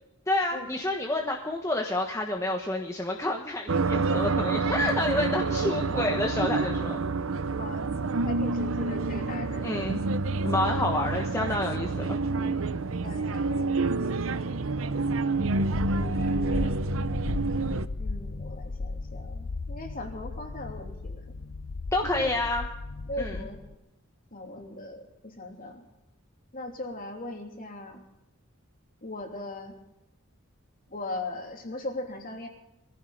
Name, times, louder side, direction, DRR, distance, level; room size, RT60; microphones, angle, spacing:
voice 1, 0.3-7.0 9.6-10.0 10.4-12.5 21.9-22.7 23.2-23.4, left 2 dB, 15° left, 1 dB, 1.2 m, -29 dB
sound 1, 3.7-17.9, right 3 dB, 65° right, 0.7 m, -28 dB
voice 2, 7.6-7.9 8.2-9.9 10.4-10.8 13.0-14.1 14.9-15.5 15.9-16.8 18.0-21.2 22.1-22.3 23.1-23.6 24.3-25.8 26.5-28.0 29.0-29.8 30.9-32.5, left 2 dB, 40° left, 2 dB, 3.1 m, -39 dB
sound 2, 15.4-23.8, left 3 dB, 75° left, 0.7 m, -36 dB
22.0 x 15.5 x 4.0 m, 0.92 s
head